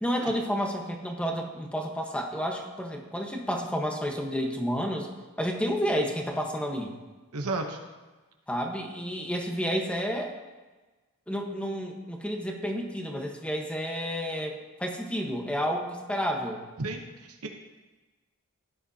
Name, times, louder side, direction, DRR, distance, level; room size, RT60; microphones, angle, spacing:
voice 1, 0.0-5.1 5.4-6.9 8.5-10.3 11.3-16.6, equal, 5° left, 1 dB, 1.2 m, -30 dB
voice 2, 7.3-7.8 16.8-17.5, right 3 dB, 80° right, 3 dB, 0.9 m, -33 dB
16.0 x 10.0 x 2.8 m, 1.2 s
head